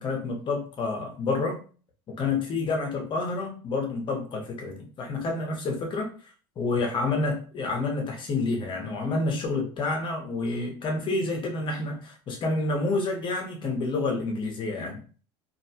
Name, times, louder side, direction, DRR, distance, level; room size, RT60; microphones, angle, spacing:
voice 1, 0.0-1.6 2.2-6.1 6.6-15.0, left 3 dB, 40° left, 2 dB, 0.9 m, -29 dB
2.6 x 2.2 x 2.8 m, 0.39 s
hypercardioid pair, 90°, 13 cm